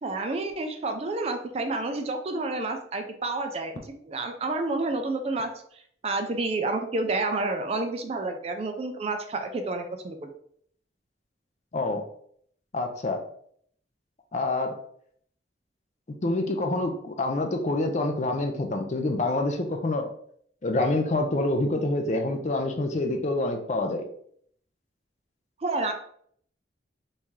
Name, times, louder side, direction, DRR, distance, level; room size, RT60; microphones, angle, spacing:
voice 1, 0.0-5.5 6.0-10.3 25.6-25.9, right 2 dB, 35° right, 6 dB, 0.4 m, -29 dB
voice 2, 12.7-13.2 14.3-14.7 16.2-20.1 20.6-24.0, left 2 dB, 40° left, 5 dB, 0.5 m, -26 dB
3.1 x 2.8 x 3.5 m, 0.64 s
head